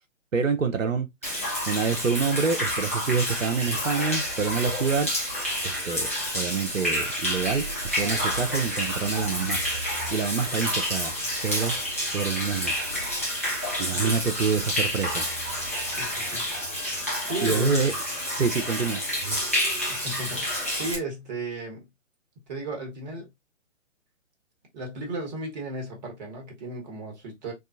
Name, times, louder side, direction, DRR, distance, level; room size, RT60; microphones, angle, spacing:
voice 1, 0.3-5.1 5.6-7.6 7.9-9.6 10.1-11.1 11.4-11.8 12.1-12.7 13.8-15.2 17.4-17.9 18.3-19.4, right 5 dB, 85° right, 0.6 m, -27 dB
Human voice / Rain / Stream, 1.2-20.9, equal, 10° left, 0.4 m, -29 dB
voice 2, 15.8-16.4 17.2-17.8 19.8-21.9 22.5-23.3 24.7-27.5, right 2 dB, 35° right, 1.3 m, -35 dB
3.6 x 2.4 x 2.4 m
figure-of-eight pair, 130°, 38 cm